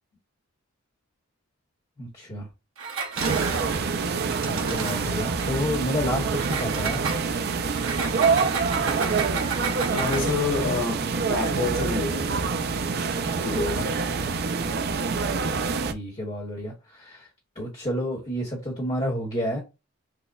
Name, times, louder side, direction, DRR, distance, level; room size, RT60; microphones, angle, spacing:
voice 1, 2.0-2.5 4.4-7.1 15.9-17.3 17.5-19.6, equal, 25° left, 1.1 m, -30 dB
Engine, 2.8-5.5 6.3-10.4, right 5 dB, 65° right, 1.0 m, -33 dB
sound 1, 3.2-15.9, right 4 dB, 45° right, 0.4 m, -26 dB
voice 2, 9.9-12.4 13.4-13.9, left 3 dB, 70° left, 1.9 m, -28 dB
6.3 x 2.1 x 2.3 m
head